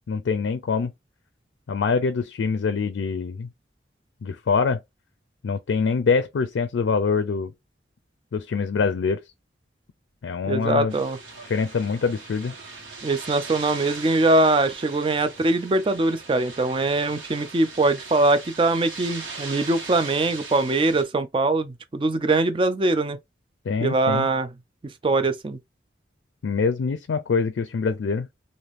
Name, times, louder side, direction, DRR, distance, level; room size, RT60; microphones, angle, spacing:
voice 1, 0.1-0.9 1.7-3.5 4.2-4.8 5.4-7.5 8.3-9.2 10.2-11.0 11.4-12.6 23.6-24.3 26.4-28.3, left 5 dB, 85° left, 0.4 m, -24 dB
voice 2, 10.5-11.2 13.0-23.2 23.8-24.5 25.0-25.6, right 2 dB, 30° right, 0.4 m, -22 dB
sound 1, 10.9-21.0, right 4 dB, 90° right, 1.3 m, -39 dB
3.3 x 2.6 x 2.5 m
head